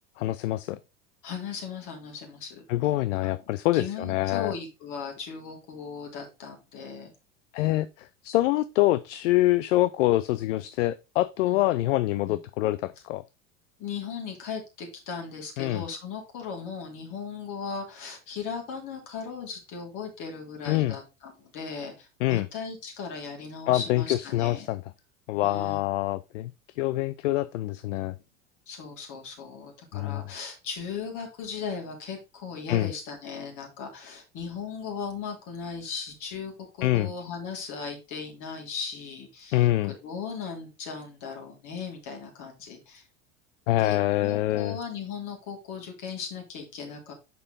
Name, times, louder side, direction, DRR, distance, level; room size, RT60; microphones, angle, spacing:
voice 1, 0.2-0.8 2.7-4.5 7.5-13.2 15.6-15.9 20.6-21.0 22.2-22.5 23.7-24.8 25.3-28.1 29.9-30.2 32.7-32.9 36.8-37.1 39.5-39.9 43.7-44.8, left 16 dB, 70° left, 0.5 m, -25 dB
voice 2, 1.2-3.0 3.2-3.3 3.7-7.1 11.4-11.6 12.2-12.4 13.8-24.7 25.4-25.8 28.7-43.0 43.8-47.1, left 5 dB, 50° left, 3.1 m, -37 dB
6.9 x 5.0 x 4.0 m
hypercardioid pair, 85°, 38 cm